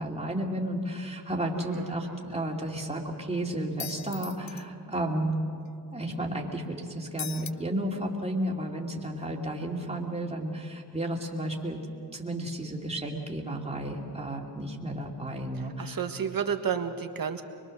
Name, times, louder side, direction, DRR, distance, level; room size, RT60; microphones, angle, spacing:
voice 1, 0.0-5.4 5.9-11.8 12.1-16.0, right 1 dB, 15° right, -1 dB, 2.8 m, -32 dB
voice 2, 1.5-2.2 15.5-17.4, right 7 dB, 55° right, 6 dB, 1.5 m, -32 dB
sound 1, 3.8-4.6 7.2-7.5, left 9 dB, 45° left, 0.5 m, -38 dB
24.0 x 22.5 x 6.5 m, 2.4 s
wide cardioid pair, 100°, 42 cm